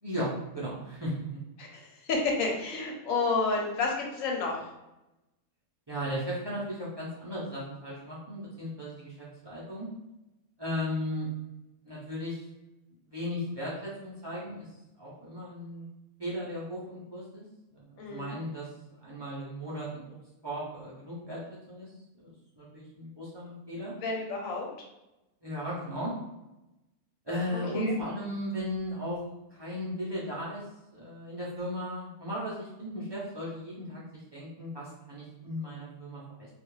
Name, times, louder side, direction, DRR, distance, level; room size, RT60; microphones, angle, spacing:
voice 1, 0.0-1.1 5.9-9.9 10.6-11.3 11.8-12.4 13.1-14.6 15.0-15.9 16.2-17.5 17.7-18.7 19.0-20.1 20.4-21.4 21.7-21.9 22.2-23.9 25.4-26.1 27.3-29.2 29.5-30.6 30.9-36.5, equal, 45° right, -7 dB, 0.3 m, -36 dB
voice 2, 1.6-4.7 18.0-18.4 24.0-24.7 27.5-27.9, left 3 dB, 70° left, 0 dB, 1.0 m, -30 dB
2.4 x 2.3 x 3.1 m, 0.96 s
omnidirectional pair, 1.5 m